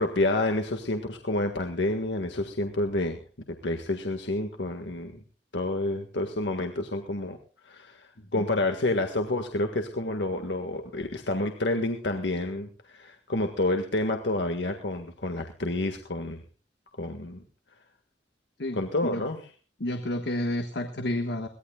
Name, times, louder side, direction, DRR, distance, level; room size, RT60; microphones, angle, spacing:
voice 1, 0.0-3.2 3.5-5.1 5.5-7.4 7.6-16.4 17.0-17.4 18.7-19.4, left 2 dB, 85° left, 5 dB, 1.7 m, -29 dB
voice 2, 18.6-19.2 19.8-21.5, left 1 dB, 70° left, 6 dB, 1.5 m, -31 dB
23.0 x 17.5 x 2.3 m, 0.35 s
head